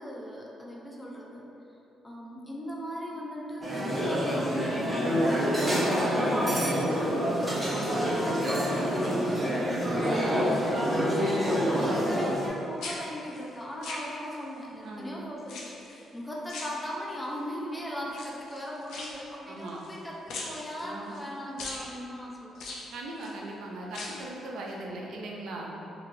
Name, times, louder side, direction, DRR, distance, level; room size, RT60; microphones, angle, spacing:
voice 1, 0.0-1.5 2.0-22.6, equal, 15° left, -3 dB, 0.5 m, -38 dB
sound 1, 3.6-12.5, equal, 20° right, 0.7 m, -27 dB
sound 2, 7.7-8.5 9.0-9.4 9.7-10.7 11.0-12.5 12.8-14.6 15.4-16.0 16.5-17.3 18.1-20.0 20.3-21.3 21.6-21.9 22.5-23.4 23.8-24.3 24.7-24.8, left 3 dB, 80° left, 0.4 m, -42 dB
voice 2, 7.7-8.2 11.8-12.0 14.8-15.2 19.5-19.8 20.8-21.2 22.9-25.7, right 2 dB, 75° right, -2 dB, 0.4 m, -39 dB
2.9 x 2.5 x 2.7 m, 2.9 s
cardioid pair, 90°, 0 cm